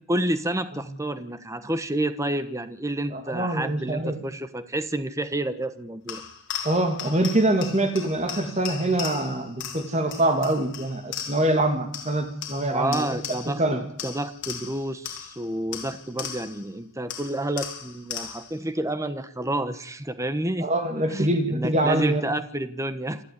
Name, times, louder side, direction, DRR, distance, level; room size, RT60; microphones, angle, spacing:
voice 1, 0.1-6.2 12.7-20.7 21.1-23.2, right 1 dB, 15° right, 11 dB, 1.1 m, -29 dB
voice 2, 3.1-4.2 6.6-13.2 13.6-13.8 20.6-22.2, right 1 dB, 35° right, 6 dB, 2.7 m, -24 dB
sound 1, 6.1-11.6 11.9-13.7 14.0-16.7 17.1-18.6, left 8 dB, 60° left, 5.1 m, -37 dB
28.0 x 11.5 x 9.8 m, 0.66 s
head